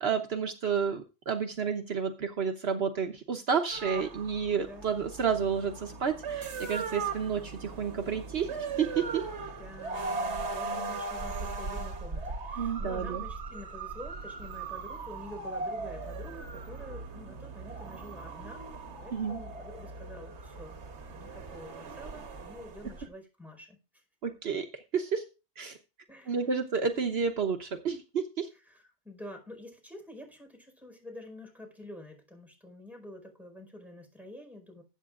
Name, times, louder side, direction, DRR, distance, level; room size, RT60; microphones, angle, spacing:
voice 1, 0.0-8.5 8.8-9.2 12.6-13.2 19.1-19.4 24.2-24.7 24.9-25.2 25.6-25.8 26.3-28.5, right 6 dB, 65° right, 6 dB, 1.2 m, -30 dB
sound 1, 3.7-23.1, right 4 dB, 85° right, 1.5 m, -38 dB
voice 2, 9.6-18.6 19.0-20.8 21.1-23.8 26.1-26.4 28.5-34.8, left 1 dB, ahead, 2 dB, 4.6 m, -48 dB
20.5 x 8.6 x 2.5 m, 0.30 s
omnidirectional pair, 1.1 m